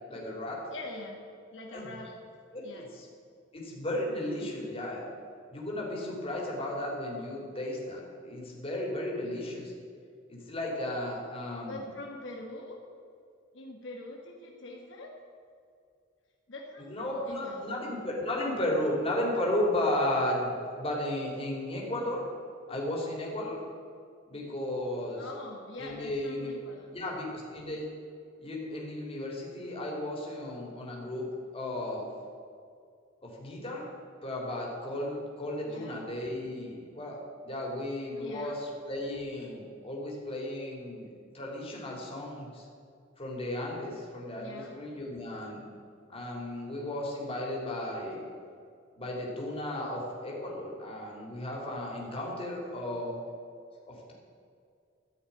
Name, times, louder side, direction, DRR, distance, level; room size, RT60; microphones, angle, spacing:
voice 1, 0.1-0.6 1.7-1.8 2.5-2.6 2.9-3.1 3.5-5.1 5.5-9.7 10.3-11.8 16.8-22.2 22.7-23.6 24.3-25.2 25.8-26.6 26.9-27.8 28.4-31.3 31.5-32.1 33.2-33.8 34.2-37.2 37.4-42.7 43.2-45.6 46.1-48.2 49.0-53.2 53.8-54.1, left 1 dB, 30° left, -2 dB, 3.2 m, -34 dB
voice 2, 0.7-1.2 1.5-2.1 2.6-2.8 11.7-12.8 13.5-15.1 16.5-17.8 25.2-27.0 35.7-36.0 38.2-38.6 44.4-44.8, left 2 dB, 70° left, -1 dB, 1.6 m, -44 dB
14.5 x 5.7 x 10.0 m, 2.3 s
head